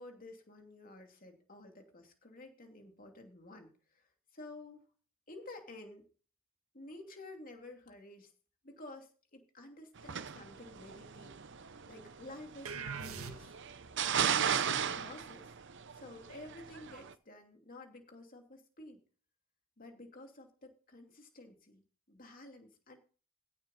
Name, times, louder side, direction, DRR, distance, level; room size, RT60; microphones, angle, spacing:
voice 1, 0.0-4.8 5.3-6.0 6.7-8.3 8.6-13.6 14.3-15.5 15.9-19.0 19.8-23.0, left 2 dB, 40° left, 4 dB, 2.7 m, -52 dB
sound 1, 10.0-17.1, right 8 dB, 55° right, 0.8 m, -36 dB
sound 2, 12.6-13.8, right 6 dB, 75° right, 1.8 m, -42 dB
16.5 x 7.6 x 4.2 m, 0.38 s
head